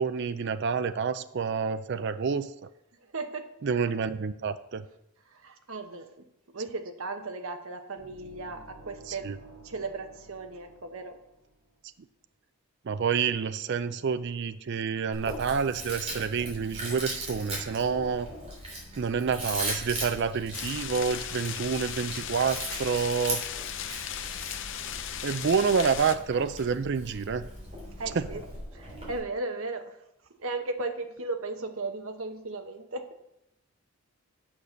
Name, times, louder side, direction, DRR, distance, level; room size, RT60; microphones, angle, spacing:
voice 1, 0.0-2.7 3.6-4.8 9.1-9.4 12.9-18.3 19.0-23.4 25.2-27.5 28.2-28.3, right 6 dB, 50° right, 12 dB, 0.4 m, -28 dB
voice 2, 3.1-3.5 5.3-6.1 6.5-9.3 9.6-11.2 28.0-28.4 28.7-30.0 30.4-33.2, right 3 dB, 65° right, 6 dB, 1.0 m, -36 dB
sound 1, 8.0-11.8, right 2 dB, 80° right, 1.9 m, -52 dB
Chewing mastication, 15.1-29.2, right 1 dB, 25° right, 3.4 m, -39 dB
sound 2, 20.5-26.2, left 9 dB, 55° left, 0.6 m, -37 dB
8.7 x 6.7 x 5.7 m, 0.82 s
head